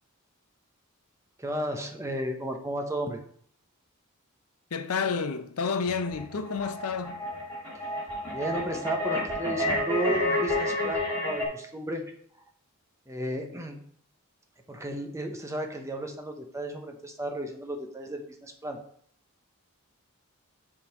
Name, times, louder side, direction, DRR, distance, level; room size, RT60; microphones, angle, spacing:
voice 1, 1.4-3.2 8.3-12.0 13.1-13.8 14.7-18.8, right 1 dB, 15° right, 0.8 m, -33 dB
voice 2, 4.7-7.3, left 5 dB, 75° left, 0.6 m, -30 dB
sound 1, 5.9-11.5, left 1 dB, 10° left, 3.2 m, -30 dB
7.2 x 3.8 x 5.2 m
head